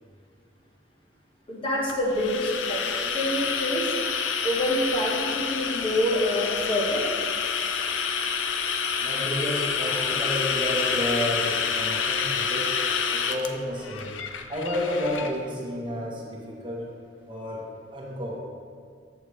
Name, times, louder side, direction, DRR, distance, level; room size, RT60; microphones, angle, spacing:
voice 1, 1.5-3.9 4.2-7.1, equal, 30° left, -4 dB, 1.2 m, -27 dB
sound 1, 1.9-15.3, left 6 dB, 85° left, 0.5 m, -28 dB
voice 2, 9.0-12.7 13.1-14.1 14.5-16.9 17.3-17.6 17.9-18.4, equal, 25° right, -4 dB, 1.1 m, -31 dB
7.9 x 7.1 x 3.2 m, 2.1 s
head